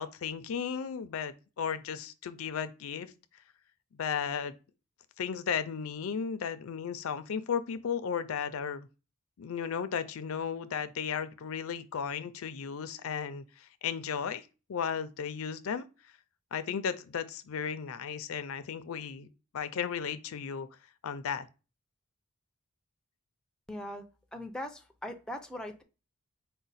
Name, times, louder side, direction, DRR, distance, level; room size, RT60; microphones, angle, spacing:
voice 1, 0.0-3.1 4.0-4.5 5.2-8.9 9.4-13.4 13.8-14.4 14.7-15.9 16.5-19.3 19.5-20.7 21.0-21.5, left 7 dB, 70° left, 0.4 m, -34 dB
voice 2, 23.7-24.1 24.3-25.8, left 1 dB, 5° left, 0.4 m, -40 dB
5.0 x 2.1 x 4.0 m
head